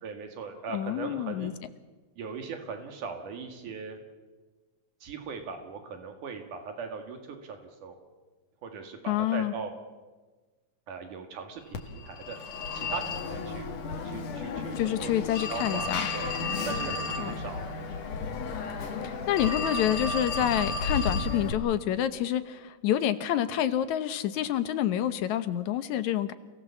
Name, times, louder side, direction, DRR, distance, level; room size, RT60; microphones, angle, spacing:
voice 1, 0.0-1.5 2.2-4.0 5.0-8.0 8.6-9.7 10.9-12.4 12.7-13.7 14.0-16.4 16.7-18.0, right 5 dB, 80° right, 5 dB, 3.5 m, -39 dB
voice 2, 0.7-1.5 9.1-9.5 14.7-16.1 17.2-17.3 19.0-26.3, left 11 dB, 75° left, 11 dB, 2.3 m, -28 dB
Telephone, 11.7-21.5, left 4 dB, 90° left, 3.5 m, -33 dB
28.5 x 17.5 x 7.2 m, 1.3 s
omnidirectional pair, 3.5 m